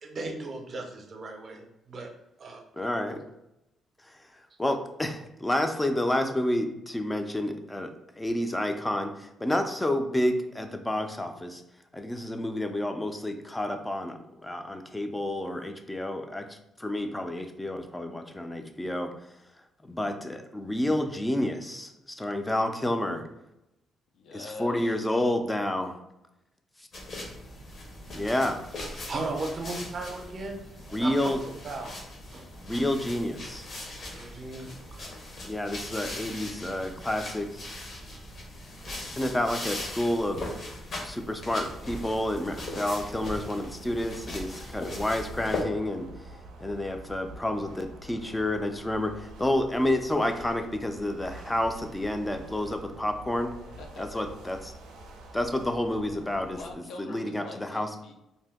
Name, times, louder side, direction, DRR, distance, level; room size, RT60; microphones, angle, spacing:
voice 1, 0.0-2.1 2.4-2.6 28.1-28.2 29.1-31.4 31.6-32.0 32.3-32.5 34.1-35.1, right 2 dB, 50° right, 3 dB, 0.6 m, -36 dB
voice 2, 2.7-3.2 4.1-11.6 11.9-19.1 19.8-23.2 24.3-26.0 28.1-28.6 30.9-31.4 32.6-33.7 35.4-37.7 39.0-40.4 41.0-53.5 54.0-54.6 55.3-56.6 57.0-57.9, left 1 dB, 10° left, 6 dB, 0.4 m, -30 dB
voice 3, 24.1-24.8 43.5-44.1 53.8-54.3 56.5-58.1, left 3 dB, 75° left, 3 dB, 0.5 m, -44 dB
sound 1, 26.9-45.6, left 1 dB, 55° left, 0.9 m, -40 dB
sound 2, 41.4-56.7, right 1 dB, 90° right, 0.4 m, -47 dB
2.6 x 2.2 x 3.4 m, 0.89 s
cardioid pair, 90°, 0 cm